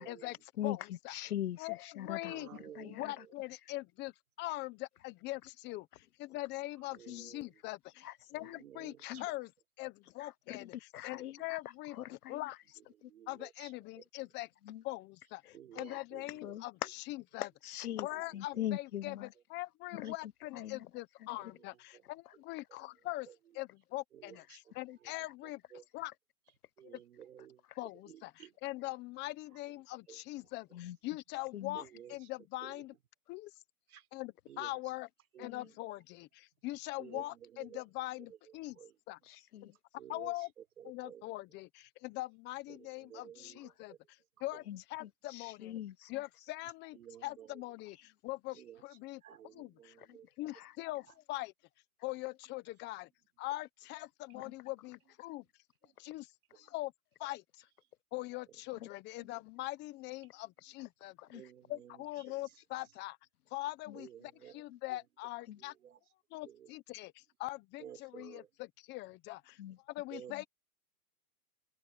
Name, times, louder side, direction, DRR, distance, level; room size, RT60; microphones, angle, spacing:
voice 1, 0.0-3.3 7.1-7.3 8.0-8.2 8.4-8.5 9.0-9.3 10.2-11.6 11.9-12.5 13.0-13.1 14.6-14.8 15.4-16.0 16.4-16.7 17.4-18.1 18.3-19.3 19.9-20.9 21.2-21.3 24.9-25.0 27.7-27.8 30.7-31.0 31.5-31.8 35.4-35.7 39.2-39.8 44.7-46.2 50.0-50.2 50.5-50.7 54.3-54.5 58.8-58.9 59.2-59.4 61.2-61.4 63.9-64.0 64.7-64.8 65.5-65.6 69.6-69.8 70.3-70.4, left 12 dB, 80° left, 0.9 m, -43 dB
voice 2, 0.6-1.1 1.6-2.5 2.8-9.5 9.8-10.7 11.0-12.6 13.3-14.5 14.8-16.7 17.1-17.5 18.0-23.3 23.5-25.6 25.9-26.1 26.8-27.0 27.8-32.9 33.3-33.5 34.1-35.1 35.4-38.8 39.1-39.2 39.6-39.7 40.1-40.5 40.8-44.6 44.9-45.8 46.1-50.0 50.4-51.5 52.0-53.1 53.4-55.4 56.0-56.3 56.6-56.9 57.2-57.7 58.1-61.4 61.7-63.2 63.5-64.1 64.5-65.7 66.3-69.6 69.9-70.4, left 19 dB, 25° left, 1.1 m, -42 dB
voice 3, 2.2-3.3 6.9-7.5 8.3-9.2 11.4-11.5 12.3-12.4 13.0-13.7 15.5-16.5 18.1-18.4 21.4-21.5 21.9-22.0 23.3-23.4 24.1-24.7 25.0-25.1 25.7-25.8 26.8-27.6 28.1-28.5 30.1-30.2 31.7-32.2 32.6-32.9 33.9-34.1 34.5-34.8 35.3-35.7 37.0-37.8 38.5-38.9 40.0-40.5 40.8-41.3 42.7-44.0 44.5-44.6 46.9-47.6 48.5-48.8 49.2-50.3 61.3-62.4 63.9-64.6 64.9-65.0 65.6-66.0 66.4-66.7 67.8-68.5 70.1-70.5, right 10 dB, 75° right, 4.9 m, -53 dB
hypercardioid pair, 145°, 45 cm